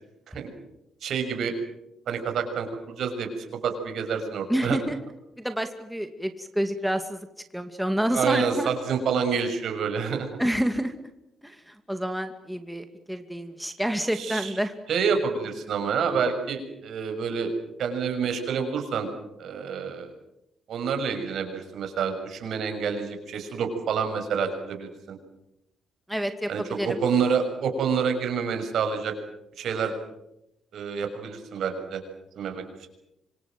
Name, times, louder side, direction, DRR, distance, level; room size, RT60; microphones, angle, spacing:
voice 1, 1.0-1.5 2.1-2.7 3.0-3.3 3.6-4.8 8.1-10.3 14.2-14.5 14.9-17.5 17.8-19.1 19.4-20.1 20.7-25.2 26.5-29.1 29.6-29.9 30.7-32.0 32.4-32.6, right 6 dB, 65° right, 6 dB, 6.4 m, -28 dB
voice 2, 4.5-5.0 5.4-7.2 7.5-8.7 10.4-10.9 11.4-14.7 26.1-27.0, equal, 5° right, 7 dB, 2.3 m, -28 dB
26.0 x 25.5 x 7.7 m, 0.86 s
cardioid pair, 90°, 0 cm